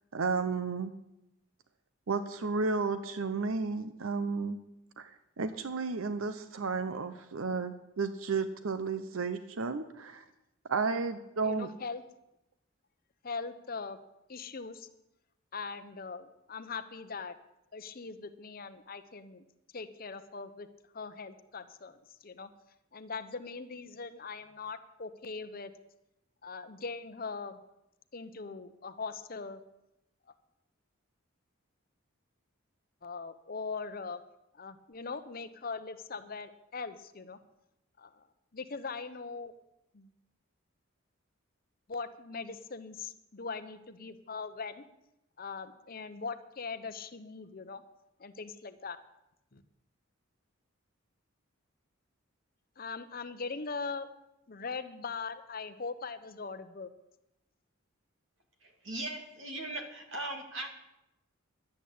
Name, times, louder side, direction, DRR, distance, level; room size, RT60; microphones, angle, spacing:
voice 1, 0.1-0.9 2.1-4.6 5.0-10.2 10.7-11.7, right 4 dB, 80° right, 10 dB, 0.7 m, -33 dB
voice 2, 11.4-12.0 13.2-14.0 14.3-14.9 15.5-17.3 17.7-19.4 19.7-20.7 20.9-22.0 22.2-22.5 22.9-25.7 26.4-27.6 28.1-29.6 33.0-34.2 34.5-37.4 38.0-38.2 38.5-39.5 39.9-40.1 41.9-44.8 45.4-47.8 48.2-49.0 49.5-49.6 52.8-54.1 54.5-56.9, left 4 dB, 45° left, 10 dB, 0.8 m, -41 dB
voice 3, 58.8-60.7, right 2 dB, 65° right, 3 dB, 2.5 m, -38 dB
11.5 x 8.4 x 8.5 m, 0.88 s
head